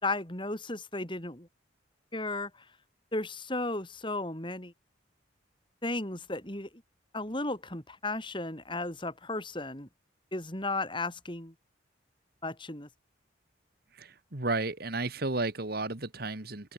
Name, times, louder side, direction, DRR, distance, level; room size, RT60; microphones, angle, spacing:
voice 1, 0.0-1.5 2.1-2.5 3.1-4.7 5.8-6.7 7.1-9.9 10.3-11.5 12.4-12.9, left 2 dB, 25° left, 4.2 m, -34 dB
voice 2, 13.9-16.7, right 2 dB, 50° right, 1.9 m, -33 dB
open air
head